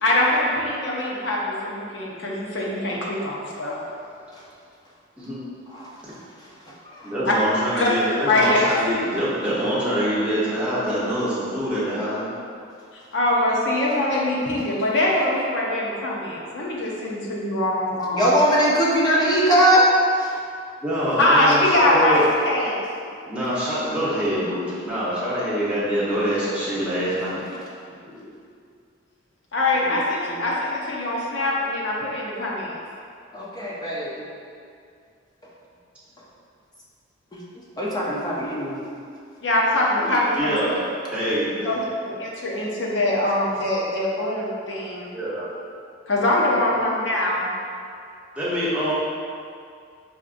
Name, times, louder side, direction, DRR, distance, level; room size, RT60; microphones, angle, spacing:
voice 1, 0.0-3.8 7.2-7.4 7.7-7.9 8.3-8.8 13.1-18.3 21.2-22.8 29.5-32.8 39.4-40.5 41.6-45.1 46.1-47.5, left 1 dB, 70° left, -4 dB, 0.7 m, -23 dB
voice 2, 7.0-12.3 20.8-22.2 23.1-27.4 28.0-28.3 40.0-40.8 41.1-41.8 45.1-45.5 46.7-46.8 48.4-48.9, equal, 5° right, -10 dB, 0.9 m, -25 dB
voice 3, 18.1-19.9 20.2-20.3 29.9-30.0 30.3-30.4 33.3-34.3 37.3-37.4 37.8-38.8, equal, 20° left, -5 dB, 0.5 m, -20 dB
4.9 x 2.5 x 2.5 m, 2.3 s
head